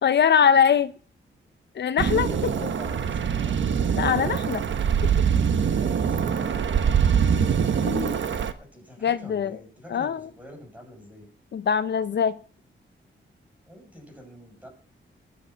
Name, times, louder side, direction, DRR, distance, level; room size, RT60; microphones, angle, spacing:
voice 1, 0.0-0.9 1.8-2.3 4.0-4.6 7.8-8.1 9.0-9.6 9.9-10.2 11.5-12.3, left 7 dB, 60° left, 13 dB, 0.5 m, -22 dB
sound 1, 2.0-8.5, right 7 dB, 70° right, 1.1 m, -23 dB
voice 2, 2.2-3.6 5.8-6.9 8.6-11.3 13.7-14.7, equal, 5° right, 1 dB, 6.7 m, -46 dB
20.0 x 7.2 x 5.7 m, 0.41 s
wide cardioid pair, 145°, 20 cm